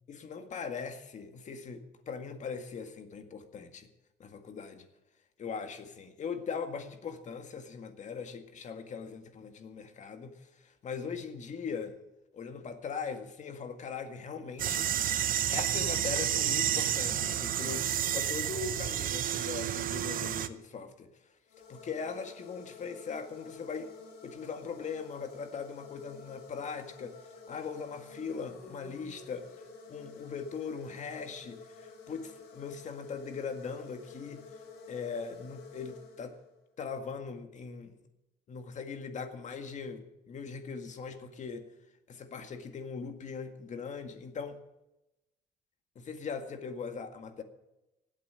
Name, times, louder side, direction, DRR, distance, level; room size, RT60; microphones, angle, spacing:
voice 1, 0.1-3.9 4.2-4.9 5.4-12.0 12.3-14.9 15.5-17.8 18.1-21.1 21.7-23.9 24.2-29.5 29.9-34.4 34.9-36.4 36.8-38.0 38.5-41.6 42.1-44.6 46.0-47.4, left 5 dB, 45° left, 7 dB, 1.9 m, -40 dB
sound 1, 14.6-20.5, right 10 dB, 55° right, 0.9 m, -30 dB
sound 2, 21.5-36.7, left 4 dB, 80° left, 4.5 m, -51 dB
16.0 x 8.5 x 8.7 m, 0.95 s
cardioid pair, 110°, 17 cm